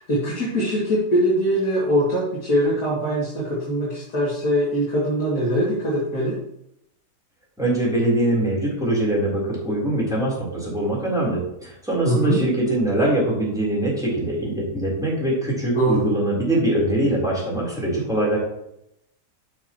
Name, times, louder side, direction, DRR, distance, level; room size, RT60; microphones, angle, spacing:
voice 1, 0.0-6.4 12.0-12.4 15.7-16.0, equal, 60° left, -8 dB, 2.9 m, -22 dB
voice 2, 7.6-18.4, right 1 dB, ahead, -5 dB, 3.6 m, -23 dB
12.5 x 6.1 x 3.0 m, 0.80 s
omnidirectional pair, 1.8 m